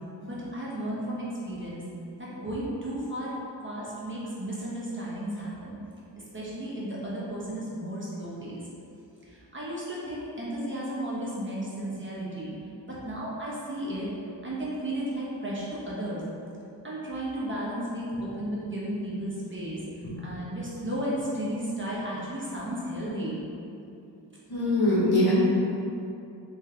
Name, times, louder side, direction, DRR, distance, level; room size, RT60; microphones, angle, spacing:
voice 1, 0.2-1.8 2.2-3.3 3.6-5.8 6.3-8.6 9.3-12.6 12.9-14.1 14.4-16.2 16.8-19.8 20.2-23.4, right 1 dB, 25° right, -7 dB, 1.1 m, -34 dB
voice 2, 24.5-25.3, left 1 dB, 60° left, -7 dB, 1.2 m, -22 dB
3.4 x 3.3 x 3.3 m, 2.7 s
cardioid pair, 45°, 44 cm